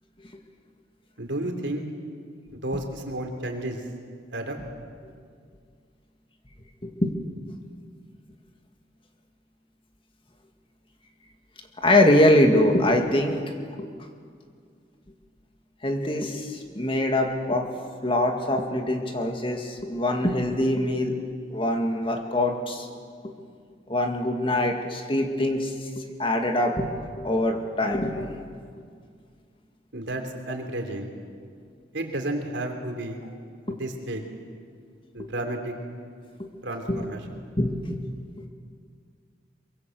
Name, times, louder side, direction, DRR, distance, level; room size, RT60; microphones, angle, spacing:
voice 1, 1.2-1.9 2.5-3.8 4.3-4.6 29.9-31.1 31.9-33.2 33.7-34.2 35.1-35.7 36.6-37.2, right 1 dB, 75° right, 4 dB, 3.2 m, -32 dB
voice 2, 6.8-7.2 11.8-13.5 13.8-13.9 15.8-17.7 18.0-21.2 21.5-22.9 23.9-26.9 27.2-28.3 33.7-33.8 35.2-35.3 36.4-36.5 36.9-37.0 37.6-38.0, left 1 dB, 30° left, 4 dB, 2.1 m, -23 dB
23.5 x 23.0 x 7.8 m, 2.1 s
head